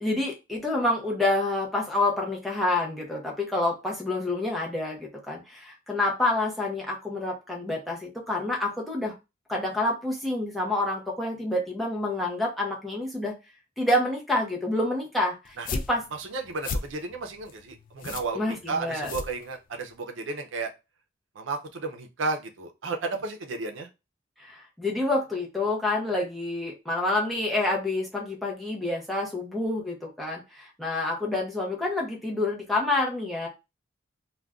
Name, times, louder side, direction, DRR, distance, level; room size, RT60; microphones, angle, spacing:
voice 1, 0.0-9.1 9.5-13.3 13.8-16.0 18.3-19.1 24.4-33.5, left 2 dB, ahead, -3 dB, 0.6 m, -28 dB
sound 1, 15.5-20.0, left 3 dB, 45° left, 0.3 m, -36 dB
voice 2, 16.2-20.7 21.4-23.9, right 3 dB, 85° right, 4 dB, 0.5 m, -33 dB
2.4 x 2.2 x 3.4 m, 0.26 s
head